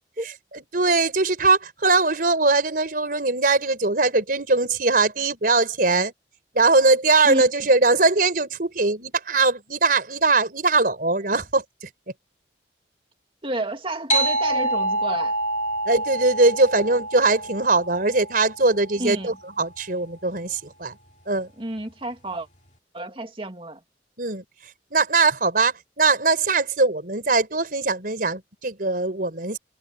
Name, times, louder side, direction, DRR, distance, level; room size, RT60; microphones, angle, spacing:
voice 1, 0.5-6.1 6.5-11.9 15.9-21.0 21.3-21.5 24.2-24.4 24.9-29.6, right 3 dB, 55° right, 4.7 m, -21 dB
voice 2, 13.4-15.4 19.0-19.4 21.6-22.5 22.9-23.8, right 1 dB, 30° right, 2.3 m, -30 dB
sound 1, 14.1-19.1, right 1 dB, 45° left, 2.7 m, -27 dB
head